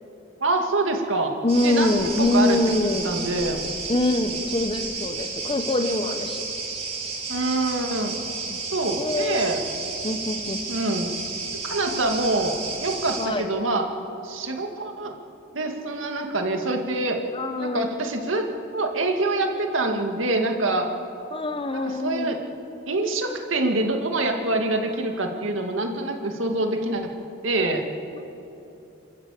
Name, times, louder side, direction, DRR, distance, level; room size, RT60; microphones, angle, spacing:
voice 1, 0.4-1.3 1.6-1.9 2.2-2.6 3.0-3.6 7.3-8.2 8.7-9.6 10.7-11.1 11.6-12.5 12.8-13.9 14.2-15.1 15.5-17.2 17.6-18.5 18.7-20.9 21.7-22.4 22.9-27.1 27.4-27.9, right 2 dB, 70° right, 3 dB, 2.2 m, -25 dB
voice 2, 1.4-3.2 3.9-6.5 8.5-8.6 9.0-9.4 10.0-10.6 13.2-13.5 17.3-17.9 21.3-22.4, left 2 dB, 25° left, 8 dB, 1.0 m, -24 dB
sound 1, 1.5-13.3, right 4 dB, 35° right, 3.5 m, -32 dB
27.0 x 14.0 x 8.4 m, 2.9 s
head